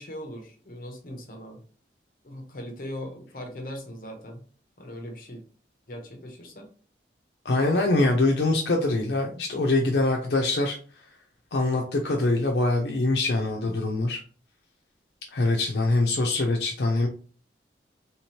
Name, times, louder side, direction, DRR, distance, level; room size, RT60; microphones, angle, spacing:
voice 1, 0.0-1.6 2.2-4.4 4.8-5.4 5.9-6.7 13.6-13.8, equal, 50° left, 2 dB, 0.8 m, -39 dB
voice 2, 7.4-10.8 11.5-14.2 15.3-17.1, left 2 dB, 70° left, 1 dB, 0.5 m, -24 dB
3.4 x 2.9 x 2.9 m, 0.40 s
head